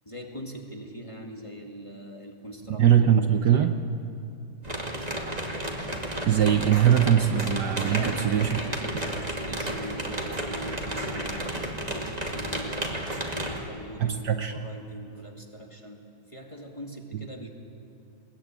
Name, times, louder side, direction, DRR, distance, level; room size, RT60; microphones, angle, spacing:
voice 1, 0.0-2.9 3.2-3.8 5.1-5.4 7.9-11.9 12.3-17.5, equal, 15° left, 1 dB, 2.1 m, -41 dB
voice 2, 2.8-3.8 6.2-8.6 14.0-14.7, right 9 dB, 65° right, 6 dB, 1.4 m, -21 dB
sound 1, 4.6-13.6, right 1 dB, 20° right, 2.3 m, -32 dB
21.5 x 21.0 x 9.0 m, 2.5 s
omnidirectional pair, 2.1 m